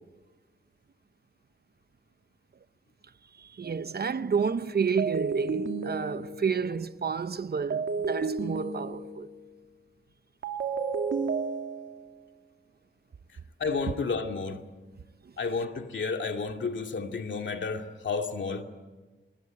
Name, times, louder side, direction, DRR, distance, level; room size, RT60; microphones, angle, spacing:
voice 1, 3.3-9.3 15.2-15.3, right 6 dB, 55° right, 0.9 m, -30 dB
sound 1, 3.6-3.9 5.0-6.7 7.7-9.4 10.4-12.1, right 4 dB, 90° right, 2.6 m, -32 dB
voice 2, 13.6-14.6 15.4-18.6, left 4 dB, 75° left, 2.3 m, -31 dB
26.0 x 22.0 x 9.5 m
wide cardioid pair, 110°, 19 cm